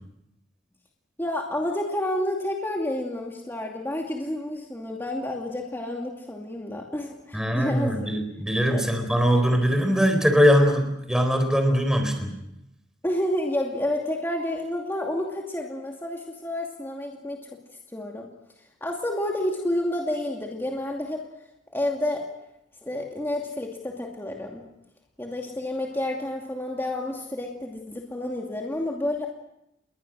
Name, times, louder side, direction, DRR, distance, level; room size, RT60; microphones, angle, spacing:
voice 1, 1.2-8.0 8.7-8.9 13.0-17.4 17.9-18.3 18.8-21.2 21.7-22.3 22.8-24.6 25.2-29.3, left 1 dB, 15° left, 0 dB, 2.6 m, -29 dB
voice 2, 7.3-12.1, equal, 5° right, 5 dB, 4.2 m, -21 dB
30.0 x 22.5 x 6.4 m, 0.85 s
head